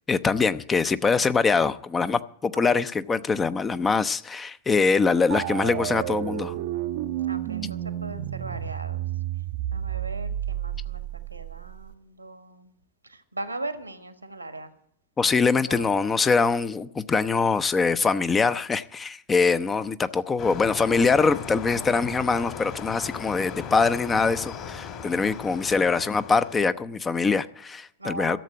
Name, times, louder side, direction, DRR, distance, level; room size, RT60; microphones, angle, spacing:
voice 1, 0.1-6.6 15.2-28.4, left 4 dB, 15° left, 0.6 m, -23 dB
sound 1, 5.3-12.0, right 12 dB, 55° right, 0.6 m, -31 dB
voice 2, 7.3-9.0 9.7-11.0 11.3-12.7 13.0-14.7 15.7-16.0 28.0-28.4, right 2 dB, 85° right, 1.4 m, -38 dB
sound 2, 20.4-26.6, left 6 dB, 35° left, 2.0 m, -38 dB
13.5 x 7.3 x 9.2 m
figure-of-eight pair, 90°, 0 cm